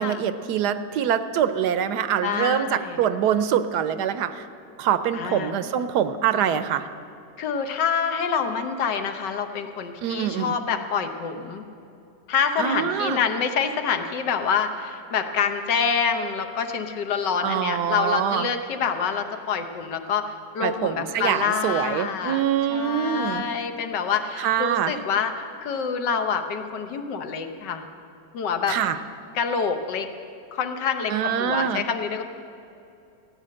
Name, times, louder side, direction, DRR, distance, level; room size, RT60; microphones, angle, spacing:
voice 1, 0.0-4.5 4.8-6.9 10.0-10.5 12.6-13.2 17.4-18.5 20.6-23.4 24.4-24.9 28.7-29.0 31.1-31.8, right 9 dB, 75° right, 12 dB, 1.1 m, -24 dB
voice 2, 2.2-3.0 5.1-5.5 7.4-11.6 12.3-22.4 22.7-25.3 25.6-27.8 28.3-28.8 29.3-30.1 30.5-32.2, left 6 dB, 75° left, 7 dB, 1.6 m, -26 dB
15.5 x 9.3 x 7.6 m, 2.8 s
omnidirectional pair, 1.9 m